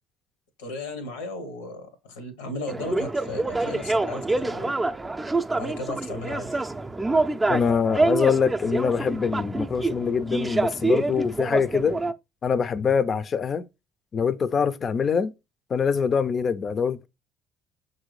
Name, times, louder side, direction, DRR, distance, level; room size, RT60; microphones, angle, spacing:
voice 1, 0.6-4.7 5.6-6.6, left 2 dB, 85° left, 0.9 m, -35 dB
sound 1, 2.7-12.1, right 2 dB, 15° right, 0.4 m, -26 dB
voice 2, 7.5-12.0 12.4-13.7 14.1-15.3 15.7-17.1, left 6 dB, 45° left, 0.4 m, -24 dB
5.9 x 2.7 x 3.1 m
hypercardioid pair, 60°, 0 cm